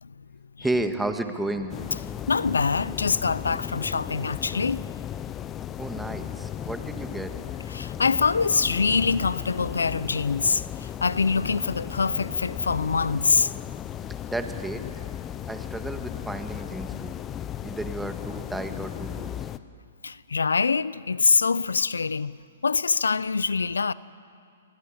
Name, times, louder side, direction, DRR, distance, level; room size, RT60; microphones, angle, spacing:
voice 1, 0.6-1.7 5.8-7.3 14.3-14.8 15.5-17.2 17.6-19.5, right 2 dB, 5° right, 1.9 m, -32 dB
sound 1, 1.7-19.6, left 10 dB, 20° left, 0.9 m, -36 dB
voice 2, 2.3-4.8 7.7-13.6 20.0-22.4 22.6-23.9, left 5 dB, 85° left, 0.7 m, -24 dB
28.0 x 23.5 x 8.8 m
hypercardioid pair, 130°, 0 cm